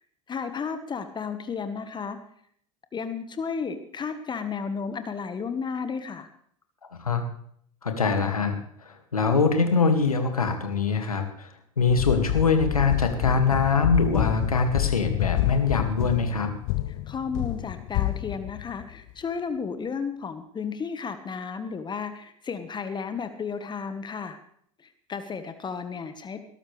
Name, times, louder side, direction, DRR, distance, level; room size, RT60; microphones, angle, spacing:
voice 1, 0.3-2.2 2.9-6.3 16.9-24.4 24.8-26.4, left 5 dB, 25° left, 9 dB, 1.4 m, -33 dB
voice 2, 7.8-11.5 11.8-16.5, left 4 dB, 90° left, 6 dB, 2.1 m, -23 dB
sound 1, 11.9-19.1, left 17 dB, 50° left, 0.6 m, -28 dB
21.0 x 12.5 x 3.3 m, 0.64 s
hypercardioid pair, 80°, 18 cm